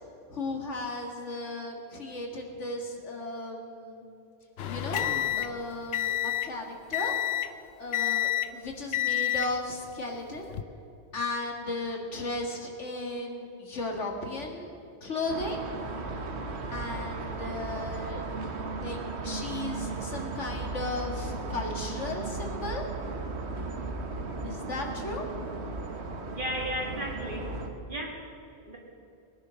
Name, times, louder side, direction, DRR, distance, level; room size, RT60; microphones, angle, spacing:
voice 1, 0.3-4.0 4.7-7.1 7.8-10.5 11.1-14.7 15.0-15.6 16.7-18.2 18.8-22.8 24.4-25.3, left 2 dB, 85° left, 2 dB, 2.3 m, -35 dB
sound 1, 4.6-6.6 6.9-7.6 7.9-8.6 8.9-9.6 10.4-10.6, left 13 dB, 65° left, 0.9 m, -29 dB
sound 2, 15.3-27.7, right 3 dB, 65° right, 1.5 m, -36 dB
voice 2, 26.3-27.5 27.8-28.2 28.7-28.8, equal, 45° right, -2 dB, 2.3 m, -34 dB
20.0 x 10.5 x 6.4 m, 2.8 s
omnidirectional pair, 1.2 m